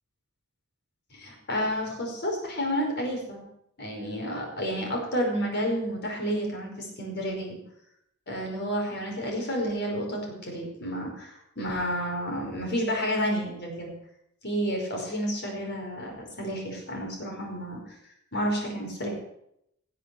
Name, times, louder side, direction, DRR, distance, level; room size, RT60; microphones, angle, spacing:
voice 1, 1.1-3.4 3.8-7.6 8.3-13.9 14.4-18.0 18.3-19.1, equal, 55° left, 1 dB, 5.1 m, -30 dB
18.0 x 7.7 x 6.9 m, 0.75 s
head